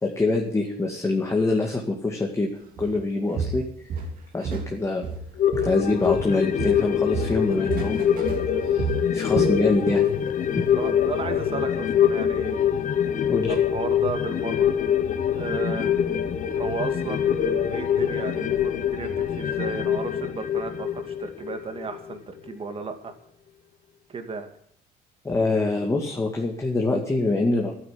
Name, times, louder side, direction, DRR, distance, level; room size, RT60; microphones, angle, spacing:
voice 1, 0.0-2.5 2.8-3.6 4.3-5.1 5.6-8.3 8.6-10.0 10.6-10.7 13.3-13.6 25.2-27.7, left 2 dB, 15° left, 1 dB, 2.1 m, -25 dB
Walk footsteps, 2.8-3.0 3.4-4.7 5.0-6.3 6.6-10.1 10.4-10.7 11.1-11.2, right 5 dB, 55° right, 3.5 m, -31 dB
sound 1, 5.4-22.2 22.5-22.6, left 9 dB, 50° left, 1.3 m, -24 dB
voice 2, 10.8-12.6 13.5-14.7 15.3-16.0 16.5-23.1 24.1-24.5, right 4 dB, 35° right, 6 dB, 2.4 m, -34 dB
12.0 x 9.4 x 9.4 m, 0.64 s
cardioid pair, 110°, 17 cm